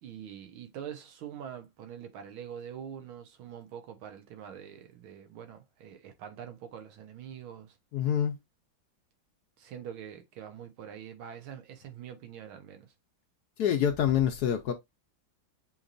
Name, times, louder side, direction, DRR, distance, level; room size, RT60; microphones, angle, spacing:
voice 1, 0.0-7.8 9.6-12.9, right 9 dB, 90° right, 1.8 m, -44 dB
voice 2, 7.9-8.3 13.6-14.7, left 9 dB, 70° left, 1.0 m, -26 dB
6.9 x 3.0 x 2.5 m
omnidirectional pair, 2.2 m